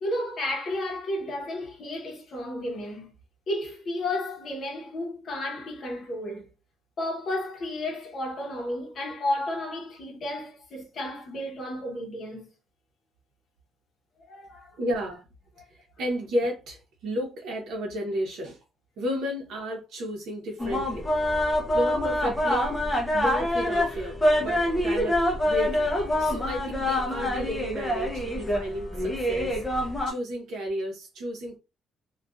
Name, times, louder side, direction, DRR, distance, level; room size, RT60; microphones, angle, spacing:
voice 1, 0.0-3.1 3.5-6.5 7.0-12.5 14.2-14.7 15.6-15.7 26.2-26.3, left 1 dB, 40° left, 0.8 m, -32 dB
voice 2, 14.8-15.3 16.0-18.6 19.0-21.1 21.5-22.7 23.1-25.9 26.2-31.6, equal, 70° right, 0.8 m, -32 dB
sound 1, 20.6-30.1, left 1 dB, 10° left, 0.5 m, -26 dB
2.5 x 2.2 x 2.2 m
cardioid pair, 180°, 0 cm